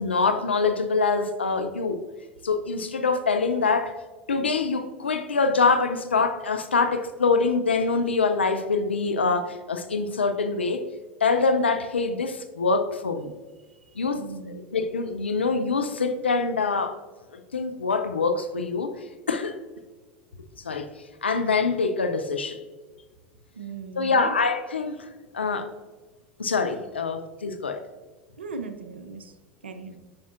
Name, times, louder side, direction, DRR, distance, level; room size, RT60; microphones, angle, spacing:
voice 1, 0.0-2.0 2.4-3.9 4.3-10.8 11.2-13.3 14.0-17.0 17.5-18.9 19.3-19.6 20.6-20.9 21.2-22.6 24.0-25.1 25.3-25.7 26.4-27.8, left 4 dB, 90° left, 8 dB, 0.6 m, -24 dB
voice 2, 14.2-14.6 23.6-24.4 28.4-29.3 29.6-30.0, right 4 dB, 90° right, 8 dB, 0.6 m, -38 dB
8.6 x 5.6 x 2.4 m, 1.3 s
hypercardioid pair, 80°, 6 cm